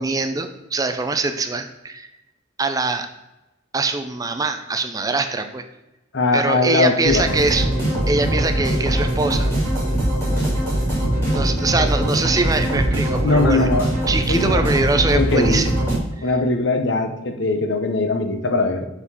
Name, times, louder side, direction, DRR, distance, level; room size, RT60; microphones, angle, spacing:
voice 1, 0.0-2.1 2.6-3.1 3.7-5.6 6.3-7.7 8.1-9.5 11.3-13.7 14.1-15.7 16.2-16.3, right 3 dB, 15° right, 8 dB, 0.4 m, -23 dB
voice 2, 6.1-7.3 13.2-13.9 14.3-14.6 15.1-15.6 16.2-18.9, left 2 dB, 60° left, 7 dB, 0.8 m, -20 dB
sound 1, 7.0-16.0, right 1 dB, 10° left, 2.7 m, -21 dB
7.1 x 4.3 x 5.5 m, 0.98 s
head